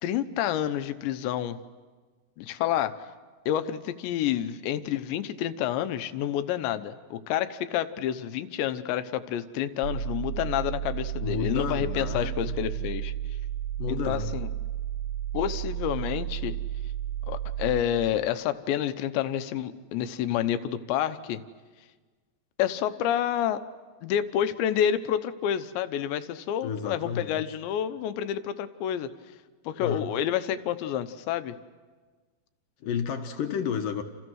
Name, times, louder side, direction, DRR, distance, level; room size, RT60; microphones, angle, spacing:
voice 1, 0.0-1.6 2.4-2.9 3.5-13.1 13.9-14.5 15.3-16.6 17.3-21.4 22.6-23.6 24.0-29.1 29.7-31.5, left 10 dB, 85° left, 11 dB, 3.2 m, -29 dB
sound 1, 9.8-17.8, right 11 dB, 80° right, 3.7 m, -32 dB
voice 2, 11.2-12.6 13.8-14.3 26.6-27.6 29.8-30.0 32.8-34.0, left 7 dB, 65° left, 5 dB, 2.4 m, -31 dB
29.5 x 28.5 x 6.4 m, 1.4 s
omnidirectional pair, 5.1 m